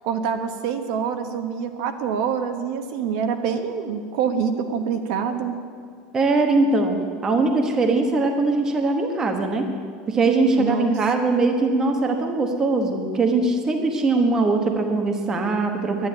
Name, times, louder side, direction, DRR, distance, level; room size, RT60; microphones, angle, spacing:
voice 1, 0.0-5.6 10.6-11.0, right 6 dB, 65° right, 6 dB, 1.2 m, -26 dB
voice 2, 6.1-7.0 7.2-9.7 10.1-16.1, right 3 dB, 15° right, 3 dB, 1.1 m, -21 dB
11.0 x 10.0 x 9.8 m, 2.1 s
cardioid pair, 180°, 3 cm